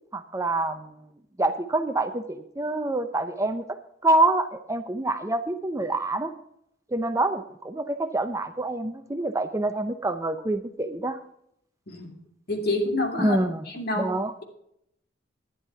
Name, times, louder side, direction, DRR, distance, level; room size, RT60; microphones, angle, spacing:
voice 1, 0.1-1.0 1.4-3.6 4.0-6.3 6.9-11.2 13.2-13.7 13.9-14.3, right 2 dB, 15° right, 9 dB, 0.6 m, -26 dB
voice 2, 12.5-13.4 13.7-14.1, left 2 dB, 60° left, 3 dB, 2.4 m, -27 dB
12.0 x 10.0 x 4.6 m, 0.73 s
head